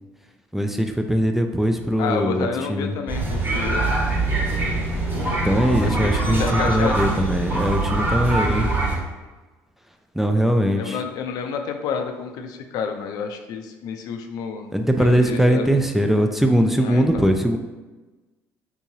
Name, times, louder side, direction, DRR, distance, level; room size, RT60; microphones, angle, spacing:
voice 1, 0.5-2.9 5.4-8.7 10.2-11.0 14.7-17.6, equal, 5° right, 5 dB, 0.3 m, -20 dB
voice 2, 2.0-4.0 5.8-7.4 10.8-14.7 15.0-15.7 16.8-17.3, left 6 dB, 70° left, 6 dB, 0.4 m, -29 dB
sound 1, 3.1-9.0, right 2 dB, 35° right, 1.1 m, -23 dB
3.7 x 2.9 x 2.7 m, 1.2 s
supercardioid pair, 90°, 7 cm